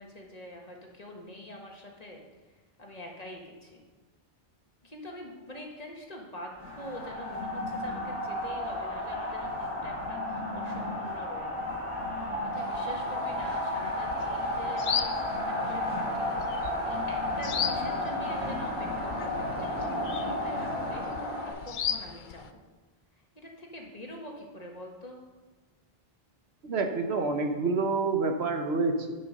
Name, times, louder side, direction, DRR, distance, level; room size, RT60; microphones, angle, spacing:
voice 1, 0.0-2.2 2.8-3.8 4.8-11.8 12.0-22.6 23.3-25.2, left 1 dB, 40° left, 0 dB, 1.7 m, -45 dB
sound 1, 6.5-21.5, left 1 dB, 35° right, 4.2 m, -32 dB
sound 2, 12.6-22.5, left 8 dB, 55° left, 0.7 m, -38 dB
voice 2, 26.6-29.2, right 3 dB, 85° right, 5 dB, 1.3 m, -28 dB
11.0 x 5.6 x 6.7 m, 1.2 s
omnidirectional pair, 1.0 m